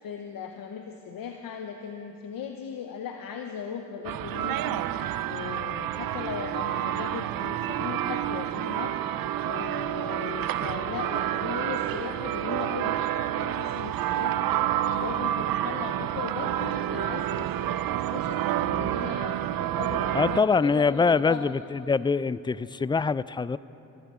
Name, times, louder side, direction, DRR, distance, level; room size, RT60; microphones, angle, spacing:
voice 1, 0.0-9.0 9.4-14.5 15.0-21.5, left 7 dB, 85° left, 4 dB, 0.7 m, -38 dB
sound 1, 4.0-20.4, right 12 dB, 90° right, 0.5 m, -29 dB
voice 2, 20.1-23.6, left 4 dB, 15° left, 18 dB, 0.3 m, -24 dB
23.5 x 15.0 x 3.7 m, 2.9 s
cardioid pair, 55°, 33 cm